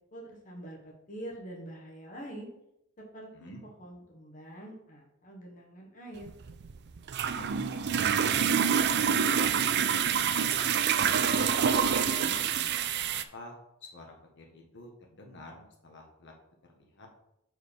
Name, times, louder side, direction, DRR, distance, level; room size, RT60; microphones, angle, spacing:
voice 1, 0.1-2.5 3.0-3.5 3.8-6.3, right 1 dB, 40° left, -1 dB, 1.3 m, -45 dB
sound 1, 6.2-13.2, right 7 dB, 55° right, 0.4 m, -27 dB
voice 2, 7.4-8.9 9.4-9.5 9.9-10.7 11.2-13.5 13.8-16.3 16.7-17.1, left 1 dB, 60° left, 0 dB, 1.3 m, -48 dB
6.4 x 4.8 x 5.2 m, 0.82 s
head